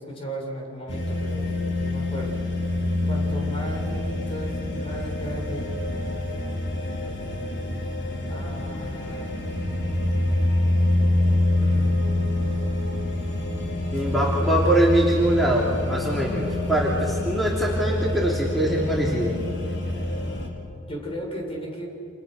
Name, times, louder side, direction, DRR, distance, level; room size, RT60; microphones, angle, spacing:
voice 1, 0.0-2.4 3.0-5.7 8.3-9.3 11.6-12.0 13.9-14.1 14.4-14.5 20.9-21.9, right 1 dB, 30° left, 0 dB, 7.1 m, -36 dB
sound 1, 0.9-20.5, left 1 dB, 65° left, 4.7 m, -26 dB
voice 2, 13.9-19.4, right 1 dB, ahead, -4 dB, 3.3 m, -23 dB
30.0 x 28.5 x 6.7 m, 2.6 s
head